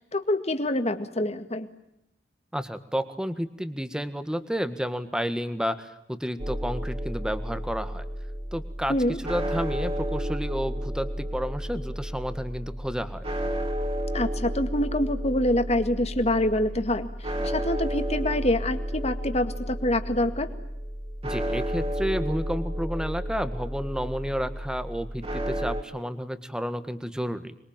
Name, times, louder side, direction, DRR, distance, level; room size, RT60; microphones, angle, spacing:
voice 1, 0.1-1.7 8.9-9.2 14.1-17.1 17.4-20.5, left 1 dB, 35° left, 9 dB, 2.0 m, -26 dB
voice 2, 2.5-8.0 8.5-13.3 21.2-27.6, equal, 5° right, 11 dB, 1.7 m, -31 dB
sound 1, 6.4-25.8, equal, 35° right, 3.4 m, -32 dB
26.5 x 22.5 x 9.0 m, 0.82 s
head